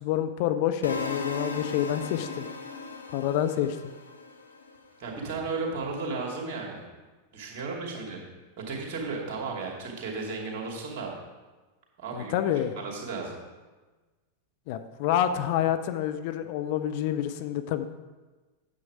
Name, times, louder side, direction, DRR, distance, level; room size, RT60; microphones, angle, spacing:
voice 1, 0.0-2.4 3.1-3.8 12.1-12.7 14.7-17.9, left 10 dB, 50° left, 9 dB, 0.5 m, -28 dB
sound 1, 0.8-4.9, left 3 dB, 80° left, 0.8 m, -37 dB
voice 2, 5.0-6.8 7.3-8.2 8.6-11.1 12.0-12.3 12.8-13.4, right 4 dB, 45° right, -1 dB, 2.6 m, -34 dB
9.2 x 7.7 x 4.8 m, 1.3 s
figure-of-eight pair, 90°, 0 cm